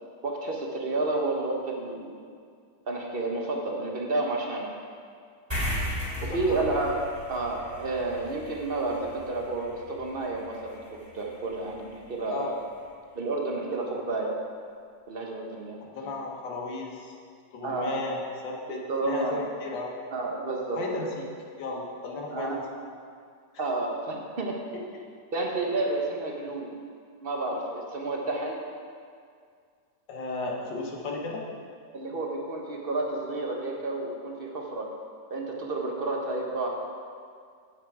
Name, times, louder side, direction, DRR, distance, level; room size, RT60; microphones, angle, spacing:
voice 1, 0.2-2.2 2.9-4.8 6.2-6.9 7.3-10.8 11.1-12.5 13.1-14.3 15.1-15.8 17.6-18.0 18.9-19.4 20.1-21.1 22.3-22.6 23.6-24.6 25.3-26.7 27.2-28.6 31.9-34.9 35.3-36.7, right 2 dB, 40° right, 0 dB, 1.0 m, -30 dB
sound 1, 5.5-12.3, left 1 dB, 10° right, 2.6 m, -37 dB
voice 2, 6.0-6.7 12.2-12.5 15.8-17.1 17.5-19.9 20.7-21.2 21.6-22.6 30.1-31.4, left 3 dB, 80° left, -1 dB, 1.9 m, -35 dB
8.7 x 7.6 x 4.8 m, 2.2 s
omnidirectional pair, 2.0 m